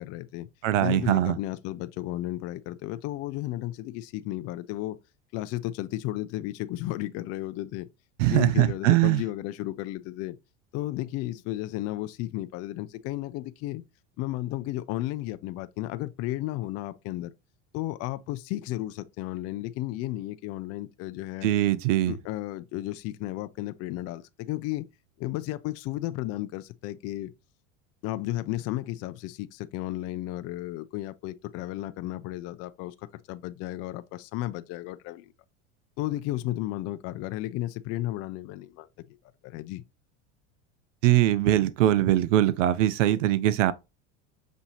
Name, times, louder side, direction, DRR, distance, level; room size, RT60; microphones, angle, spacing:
voice 1, 0.0-0.5 0.8-5.0 5.3-7.9 8.3-10.4 10.7-13.8 14.2-17.3 17.7-21.5 22.1-24.9 25.2-27.3 28.0-35.3 36.0-39.2 39.4-39.8, left 16 dB, 45° left, 0.4 m, -33 dB
voice 2, 0.6-1.4 8.2-9.2 21.4-22.1 41.0-43.7, right 13 dB, 85° right, 0.5 m, -22 dB
6.1 x 2.7 x 2.8 m
supercardioid pair, 105°, 36 cm